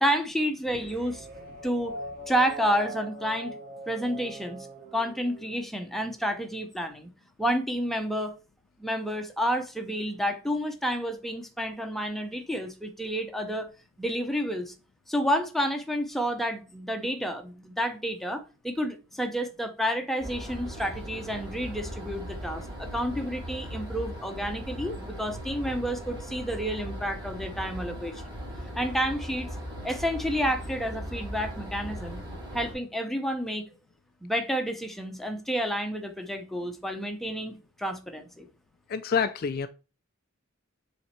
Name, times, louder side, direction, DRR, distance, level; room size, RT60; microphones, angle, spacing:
voice 1, 0.0-1.3 1.6-1.9 2.3-3.5 3.9-4.7 4.9-7.1 7.4-8.4 8.8-13.7 14.0-14.7 15.1-28.2 28.8-29.5 29.8-32.2 32.5-33.7 34.2-38.5, equal, ahead, 0.7 m, -30 dB
sound 1, 0.6-6.2, right 2 dB, 45° right, 2.1 m, -42 dB
sound 2, 20.2-32.7, equal, 25° right, 3.7 m, -38 dB
voice 2, 38.9-39.7, left 6 dB, 45° left, 0.4 m, -27 dB
7.1 x 3.3 x 4.4 m
head